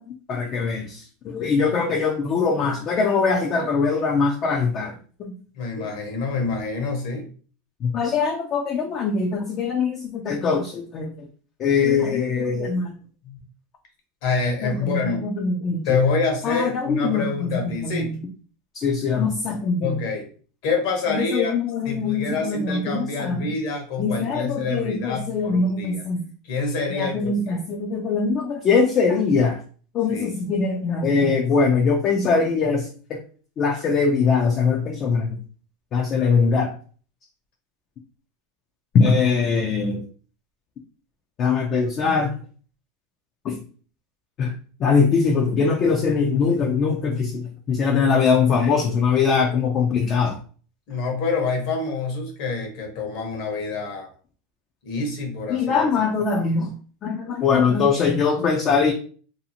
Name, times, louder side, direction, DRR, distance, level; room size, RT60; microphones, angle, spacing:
voice 1, 0.0-4.9 5.2-5.3 5.8-5.9 7.8-11.1 11.6-12.9 14.6-16.0 16.4-18.1 18.7-20.0 21.1-23.5 24.0-26.2 26.9-29.6 29.9-33.2 33.6-35.4 35.9-36.7 38.9-40.0 41.4-42.3 43.4-43.6 44.4-44.5 44.8-50.4 55.5-56.7 57.0-58.9, left 5 dB, 35° left, 2 dB, 0.4 m, -22 dB
voice 2, 5.5-7.3 13.2-13.4 14.2-15.2 15.8-18.1 19.8-20.3 20.6-21.5 21.8-26.0 26.5-27.6 30.1-30.3 50.9-54.1 54.8-55.8, left 4 dB, 60° left, 2 dB, 0.9 m, -26 dB
2.6 x 2.4 x 2.8 m, 0.42 s
supercardioid pair, 145°, 0 cm